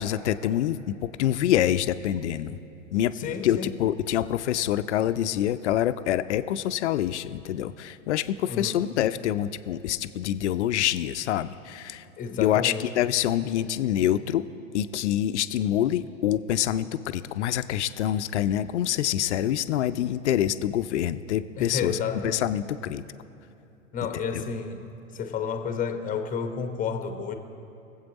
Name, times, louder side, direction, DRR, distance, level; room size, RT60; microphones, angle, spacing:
voice 1, 0.0-2.6 2.9-3.1 3.4-12.0 12.4-14.5 14.7-22.0 22.2-23.0 24.3-24.4, left 11 dB, 60° left, 13 dB, 0.6 m, -26 dB
voice 2, 3.1-3.7 8.5-8.8 12.2-12.9 21.6-22.5 23.9-24.9 25.1-27.3, left 6 dB, 20° left, 7 dB, 1.1 m, -31 dB
22.0 x 8.1 x 4.0 m, 2.8 s
figure-of-eight pair, 100°, 39 cm